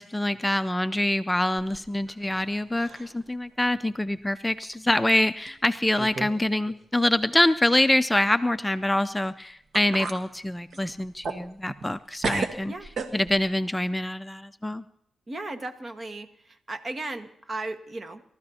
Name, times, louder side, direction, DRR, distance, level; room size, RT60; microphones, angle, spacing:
voice 1, 0.0-12.7 13.1-14.8, left 1 dB, 10° left, 11 dB, 0.5 m, -25 dB
sound 1, 1.6-2.5 2.7-3.2 3.7-3.8 4.6-4.7 5.5-5.6 6.0-6.4 6.7-6.8 9.3-9.4 9.7-10.2 10.7-12.0 12.2-13.5, right 4 dB, 65° right, 1.4 m, -34 dB
voice 2, 15.3-18.2, right 2 dB, 45° right, 7 dB, 1.4 m, -36 dB
27.0 x 13.5 x 2.8 m, 0.71 s
cardioid pair, 60°, 0 cm